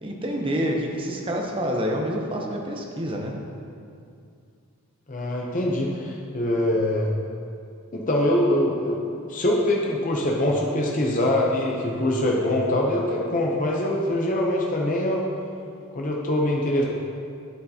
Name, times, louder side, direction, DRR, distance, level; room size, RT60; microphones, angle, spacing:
voice 1, 0.0-3.4, equal, 25° right, 1 dB, 0.8 m, -27 dB
voice 2, 5.1-7.1 7.9-15.2 15.9-16.8, left 1 dB, 35° left, -2 dB, 0.7 m, -23 dB
10.5 x 8.0 x 2.9 m, 2.4 s
head